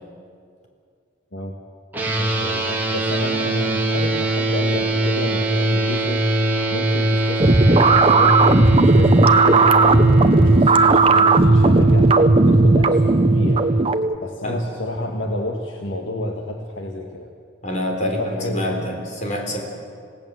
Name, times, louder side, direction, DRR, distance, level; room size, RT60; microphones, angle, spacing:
sound 1, 1.9-13.8, right 2 dB, 10° right, 3.0 m, -22 dB
voice 1, 2.2-6.3 6.7-8.4 8.8-13.6 14.2-17.3 18.0-18.9, left 1 dB, 75° left, 2 dB, 1.7 m, -29 dB
sound 2, 7.4-14.2, right 3 dB, 30° right, 0.7 m, -15 dB
voice 2, 17.6-19.6, left 1 dB, 40° left, 1 dB, 3.9 m, -26 dB
26.5 x 17.5 x 7.6 m, 2.3 s
head